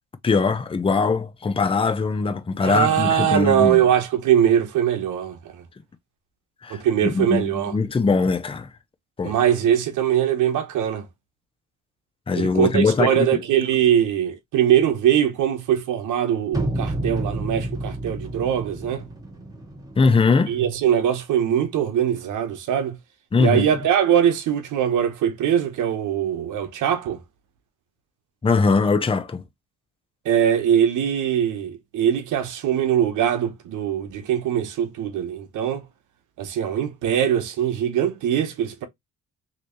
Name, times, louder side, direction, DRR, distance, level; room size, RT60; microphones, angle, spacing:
voice 1, 0.2-3.8 6.6-8.7 9.2-9.3 12.3-13.4 20.0-20.6 23.3-23.9 28.4-29.4, left 4 dB, 20° left, 0.6 m, -21 dB
voice 2, 2.6-5.4 6.7-7.7 9.2-11.1 12.4-19.0 20.5-23.0 23.4-27.2 30.2-35.8 36.4-38.8, right 9 dB, 80° right, 1.0 m, -21 dB
sound 1, 16.5-20.6, right 1 dB, 10° right, 2.0 m, -30 dB
3.2 x 3.0 x 3.0 m
cardioid pair, 90°, 30 cm